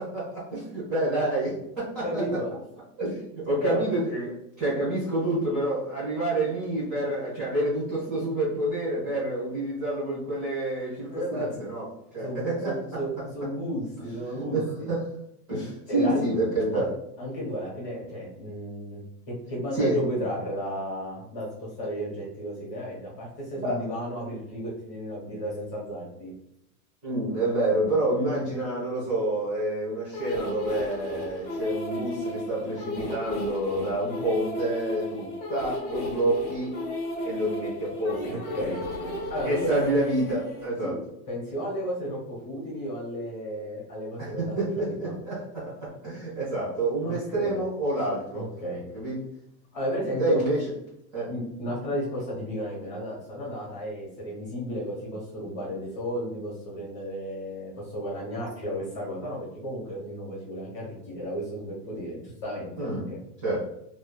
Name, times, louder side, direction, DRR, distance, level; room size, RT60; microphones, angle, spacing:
voice 1, 0.0-2.2 3.0-4.3 4.6-11.9 12.1-13.0 14.4-15.1 15.5-16.9 19.7-20.0 23.5-23.8 27.0-36.7 37.2-38.4 39.4-41.0 44.2-48.5 48.9-49.2 50.2-50.6 51.1-51.3 62.8-63.0 63.4-63.6, right 1 dB, ahead, -11 dB, 0.3 m, -28 dB
voice 2, 2.0-2.5 3.6-3.8 11.1-11.6 12.1-14.9 15.9-16.2 16.7-16.9 17.2-19.0 19.3-26.3 38.3-38.8 39.3-39.7 40.8-40.9 41.3-45.1 47.0-47.6 48.3-48.9 49.7-50.4 51.3-63.2, equal, 25° left, -5 dB, 1.0 m, -33 dB
sound 1, 30.1-40.7, left 1 dB, 65° left, 1.1 m, -34 dB
2.9 x 2.2 x 2.3 m, 0.80 s
supercardioid pair, 170°, 48 cm